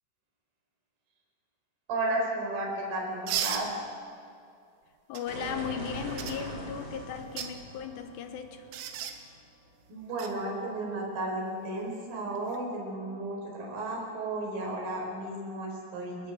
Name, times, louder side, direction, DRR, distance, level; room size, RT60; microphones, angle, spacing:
voice 1, 1.9-3.7 9.9-16.3, right 2 dB, 45° right, 0 dB, 5.9 m, -33 dB
sound 1, 3.3-3.7 5.1-5.2 6.2-6.4 7.2-7.5 8.7-9.2 10.2-10.3 12.4-12.6, right 9 dB, 75° right, 3.9 m, -33 dB
voice 2, 5.1-8.7, left 7 dB, 70° left, 7 dB, 2.9 m, -37 dB
sound 2, 5.3-10.0, right 1 dB, 25° right, 3.6 m, -42 dB
30.0 x 13.5 x 7.8 m, 2.3 s
omnidirectional pair, 6.0 m